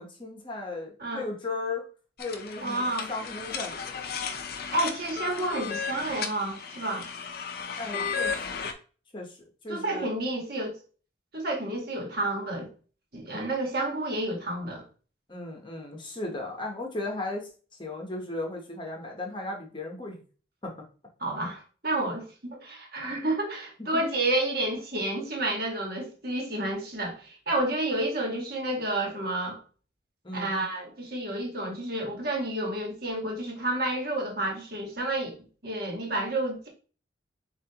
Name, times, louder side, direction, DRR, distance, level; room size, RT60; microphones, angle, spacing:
voice 1, 0.0-1.8 2.2-4.0 7.8-8.7 9.1-9.4 9.6-10.1 15.3-17.5 17.8-20.2 20.6-20.7 22.1-22.2 23.9-24.0 30.2-30.6, left 2 dB, 25° left, 0.9 m, -36 dB
sound 1, 2.2-8.7, left 6 dB, 50° left, 0.5 m, -34 dB
voice 2, 2.6-3.1 4.5-7.1 9.7-10.8 11.3-12.7 13.1-14.8 21.2-29.6 30.3-36.7, right 1 dB, 55° right, 1.4 m, -30 dB
7.2 x 2.5 x 2.9 m
head